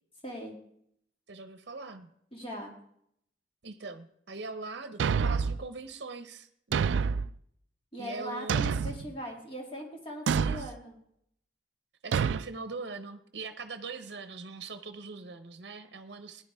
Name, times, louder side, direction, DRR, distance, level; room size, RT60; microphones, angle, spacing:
voice 1, 0.2-0.6 2.3-2.7 7.9-10.9, equal, 30° left, 0 dB, 2.5 m, -40 dB
voice 2, 1.3-2.1 3.6-7.2 8.0-9.0 10.3-10.7 12.0-16.4, right 3 dB, 70° right, 9 dB, 0.8 m, -42 dB
Thump thud, 5.0-5.6 6.7-7.3 8.5-9.0 10.3-10.7 12.1-12.4, right 6 dB, 90° right, 0.3 m, -27 dB
17.0 x 10.0 x 3.5 m, 0.71 s
head